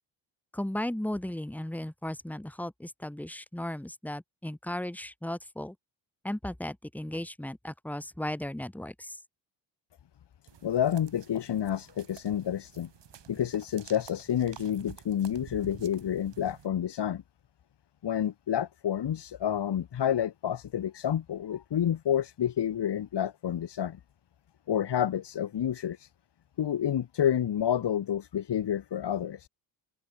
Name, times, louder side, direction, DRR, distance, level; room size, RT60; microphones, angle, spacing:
voice 1, 0.5-5.8 6.2-9.2, left 1 dB, 5° left, 2.3 m, -36 dB
sound 1, 10.5-16.7, right 9 dB, 55° right, 5.6 m, -50 dB
voice 2, 10.6-12.9 13.3-17.2 18.0-24.0 24.7-26.1 26.6-29.5, left 10 dB, 55° left, 2.6 m, -29 dB
open air
supercardioid pair, 70°, 50 cm